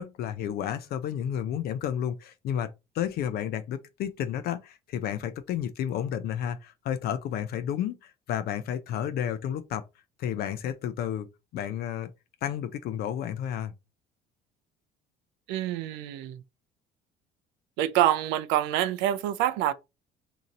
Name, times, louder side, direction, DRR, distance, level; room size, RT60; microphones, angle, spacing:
voice 1, 0.0-9.8 10.2-11.3 11.5-12.1 12.4-13.7, left 9 dB, 60° left, 0.5 m, -31 dB
voice 2, 15.5-16.4 17.8-19.7, right 12 dB, 80° right, 0.5 m, -26 dB
2.8 x 2.5 x 3.9 m
supercardioid pair, 90°, 18 cm